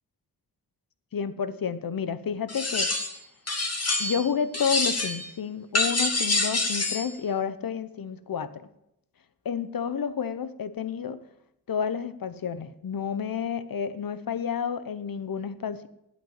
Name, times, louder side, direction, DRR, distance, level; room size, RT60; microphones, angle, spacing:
voice 1, 1.1-2.9 4.0-8.7 9.4-11.2 11.7-15.9, left 7 dB, 60° left, 14 dB, 1.0 m, -30 dB
Sharping knife, 2.5-3.2 3.5-4.3 4.5-5.3 5.7-7.1, left 2 dB, 40° left, 2.1 m, -26 dB
9.0 x 8.4 x 8.9 m, 0.81 s
cardioid pair, 65°, 38 cm